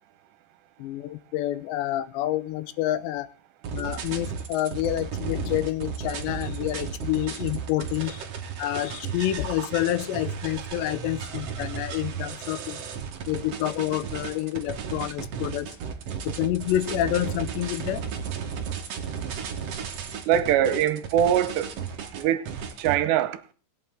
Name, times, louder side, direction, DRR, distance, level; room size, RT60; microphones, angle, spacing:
voice 1, 0.8-3.3 3.7-8.2 8.6-12.8 13.3-15.7 16.3-18.0, left 13 dB, 80° left, 2.9 m, -28 dB
sound 1, 3.6-22.9, right 7 dB, 60° right, 1.6 m, -34 dB
voice 2, 20.3-21.7 22.1-22.5 22.8-23.4, right 10 dB, 80° right, 3.0 m, -22 dB
20.0 x 8.6 x 3.7 m
omnidirectional pair, 5.2 m